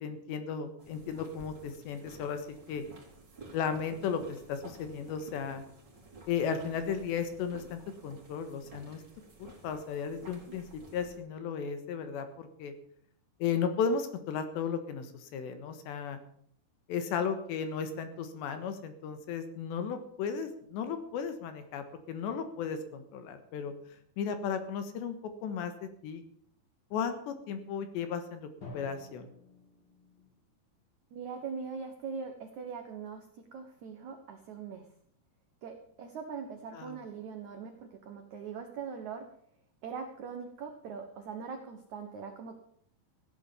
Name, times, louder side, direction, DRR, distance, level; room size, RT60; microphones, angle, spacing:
voice 1, 0.0-2.8 3.5-5.6 6.3-9.0 9.4-12.7 13.4-16.2 16.9-23.7 24.2-25.2 25.4-26.2 26.9-29.3 36.7-37.0, left 6 dB, 75° left, 9 dB, 3.6 m, -35 dB
sound 1, 0.8-11.2, right 2 dB, 25° right, 3.0 m, -53 dB
Drum, 28.6-30.5, left 2 dB, 30° left, 4.2 m, -50 dB
voice 2, 31.1-34.9 35.6-39.3 39.8-42.6, right 6 dB, 65° right, 5 dB, 1.9 m, -41 dB
16.0 x 9.4 x 7.1 m, 0.64 s
omnidirectional pair, 5.3 m